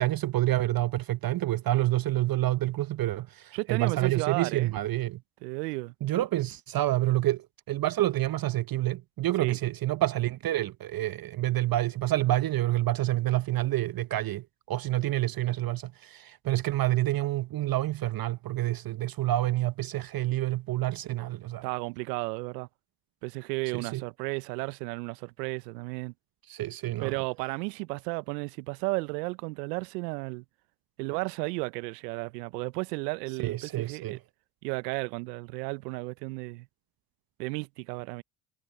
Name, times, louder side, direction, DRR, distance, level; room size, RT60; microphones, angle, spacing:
voice 1, 0.0-5.2 6.0-21.7 23.7-24.0 26.5-27.1 33.4-34.2, right 15 dB, 45° right, 0.9 m, -28 dB
voice 2, 3.5-4.7 5.4-5.9 9.4-9.6 21.6-22.7 23.2-26.1 27.0-30.4 31.0-34.2 34.6-36.7 37.4-38.2, right 27 dB, 75° right, 1.1 m, -33 dB
hypercardioid pair, 55°, 49 cm